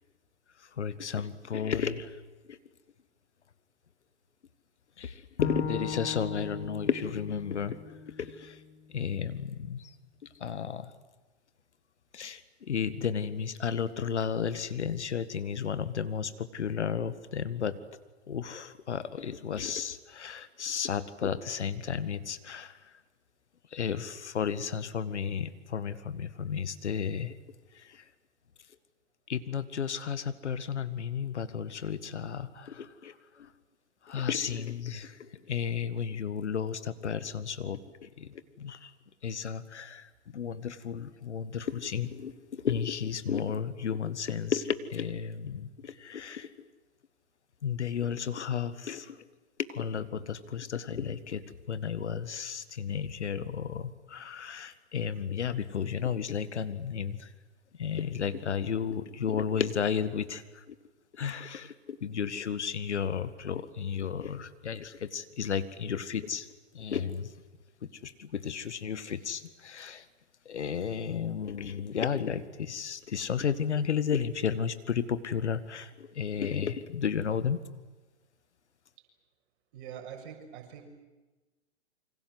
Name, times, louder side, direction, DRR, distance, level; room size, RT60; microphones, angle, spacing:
voice 1, 0.8-2.1 2.5-2.6 5.0-7.8 8.2-8.6 8.9-9.9 10.4-10.9 12.1-17.8 18.3-22.8 23.7-27.4 27.7-28.0 29.3-33.5 34.0-38.9 39.2-46.7 47.6-49.2 49.7-57.3 57.8-60.8 61.1-66.5 66.7-67.3 68.0-70.0 70.5-77.6, left 7 dB, 75° left, 13 dB, 1.9 m, -33 dB
Bowed string instrument, 5.4-8.7, left 5 dB, 60° left, 4.1 m, -37 dB
voice 2, 79.7-80.8, right 8 dB, 50° right, 3 dB, 6.9 m, -44 dB
28.0 x 25.5 x 8.0 m, 1.2 s
hypercardioid pair, 120°, 35 cm